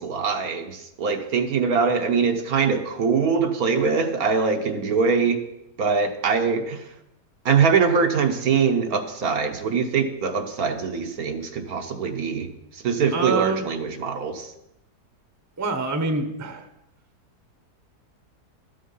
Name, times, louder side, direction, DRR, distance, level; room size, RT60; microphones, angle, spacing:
voice 1, 0.0-5.4 5.8-6.9 7.4-12.5 12.8-14.5, right 5 dB, 70° right, 5 dB, 1.4 m, -23 dB
voice 2, 13.1-13.7 15.6-16.7, right 3 dB, 15° right, 6 dB, 0.8 m, -25 dB
12.5 x 7.5 x 5.5 m, 0.85 s
omnidirectional pair, 1.7 m